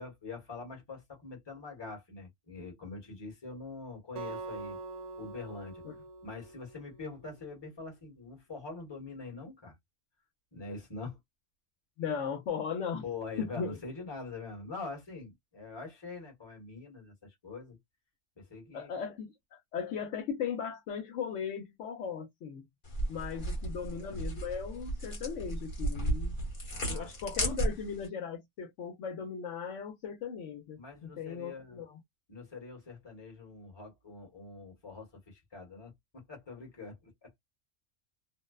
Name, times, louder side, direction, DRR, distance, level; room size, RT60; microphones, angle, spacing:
voice 1, 0.0-4.8 5.2-5.8 6.2-9.7 10.5-11.2 13.0-17.8 18.4-18.9 23.3-23.8 26.7-27.1 30.8-31.8 32.3-37.3, left 3 dB, 20° left, 1.0 m, -44 dB
Acoustic guitar, 4.2-7.4, right 3 dB, 75° right, 0.3 m, -44 dB
voice 2, 12.0-13.0 13.4-13.8 18.7-22.6 23.1-26.4 26.9-32.0, left 7 dB, 70° left, 1.0 m, -37 dB
sound 1, 22.8-28.1, right 1 dB, 40° left, 1.2 m, -34 dB
2.6 x 2.1 x 2.3 m
omnidirectional pair, 1.4 m